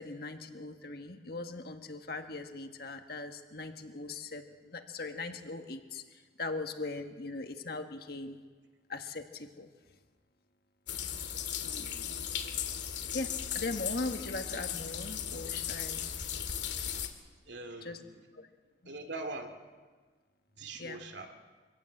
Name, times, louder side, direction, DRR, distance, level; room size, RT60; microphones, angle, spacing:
voice 1, 0.0-8.4 8.9-9.7 11.6-12.2 13.1-16.1 17.8-18.0 18.3-18.4 18.8-19.0 20.8-21.0, left 3 dB, 55° left, 6 dB, 1.7 m, -40 dB
sound 1, 10.9-17.1, left 9 dB, 70° left, 2.1 m, -37 dB
voice 2, 17.5-18.3 18.8-19.6 20.6-21.3, right 2 dB, 70° right, 5 dB, 2.6 m, -42 dB
25.0 x 17.5 x 8.0 m, 1.4 s
head